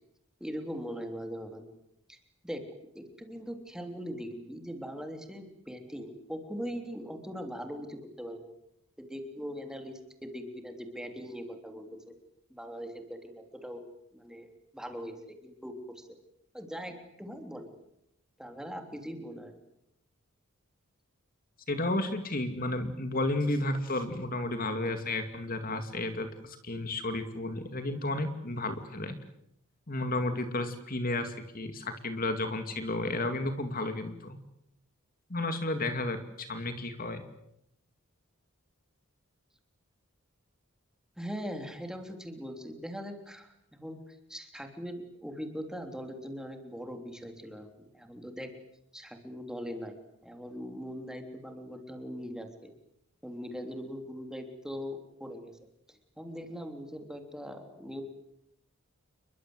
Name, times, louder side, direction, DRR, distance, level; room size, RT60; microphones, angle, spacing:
voice 1, 0.4-1.7 2.1-2.2 2.4-2.6 2.9-8.5 9.0-12.2 12.5-13.8 14.1-16.1 16.5-17.7 18.4-19.6 41.2-48.5 48.9-50.0 50.2-52.7 53.2-55.6 55.9-58.0, equal, 5° right, 5 dB, 3.4 m, -41 dB
voice 2, 21.7-29.2 29.9-34.4 35.3-37.2, left 2 dB, 40° left, 7 dB, 2.5 m, -32 dB
29.5 x 23.0 x 8.1 m, 0.77 s
head